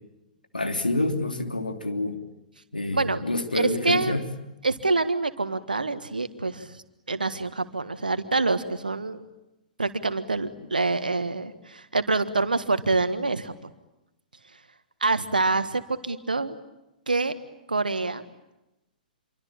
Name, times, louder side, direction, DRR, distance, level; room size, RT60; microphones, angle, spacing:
voice 1, 0.5-2.2 2.7-4.3, left 2 dB, 80° left, 5 dB, 3.1 m, -27 dB
voice 2, 3.5-4.2 4.6-6.8 7.1-9.2 9.8-13.7 15.0-16.6 17.1-17.3 17.7-18.2, right 3 dB, 75° right, 11 dB, 1.6 m, -26 dB
27.0 x 24.5 x 8.9 m, 0.92 s
figure-of-eight pair, 110°, 5 cm